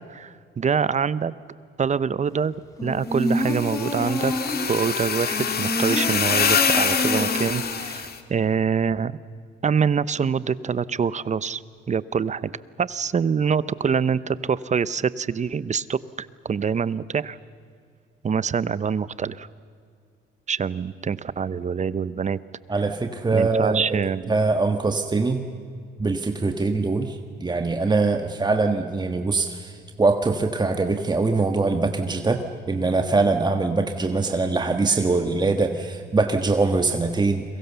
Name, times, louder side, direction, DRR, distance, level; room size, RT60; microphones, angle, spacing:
voice 1, 0.1-1.3 1.8-4.3 4.7-9.2 9.6-11.6 11.9-12.5 12.8-17.4 18.2-19.5 20.5-22.4 23.3-24.4, right 6 dB, 35° right, 17 dB, 0.8 m, -25 dB
sound 1, 2.8-4.7 5.3-7.7 8.0-8.1, equal, 15° left, 4.7 m, -27 dB
sound 2, 3.2-8.1, left 6 dB, 50° left, 2.2 m, -25 dB
voice 2, 22.7-24.0 24.3-25.5 26.0-37.4, right 3 dB, 20° right, 6 dB, 1.5 m, -23 dB
30.0 x 23.0 x 7.0 m, 2.2 s
cardioid pair, 90°, 20 cm